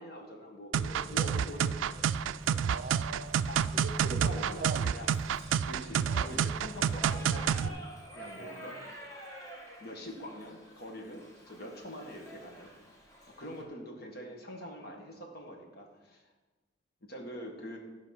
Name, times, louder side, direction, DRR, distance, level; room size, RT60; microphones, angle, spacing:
voice 1, 0.0-2.7 3.5-3.6 4.1-5.1 5.6-7.8 8.1-8.8 9.8-12.7 13.3-16.2 17.0-17.8, equal, 55° left, 2 dB, 1.6 m, -44 dB
sound 1, 0.7-7.7, right 8 dB, 85° right, 0.3 m, -29 dB
Shout / Livestock farm animals working animals, 1.1-13.6, equal, 20° left, 1.6 m, -51 dB
voice 2, 2.6-3.5 3.7-4.8 8.4-8.7, right 3 dB, 45° right, 9 dB, 0.7 m, -42 dB
13.0 x 5.1 x 5.8 m, 1.2 s
head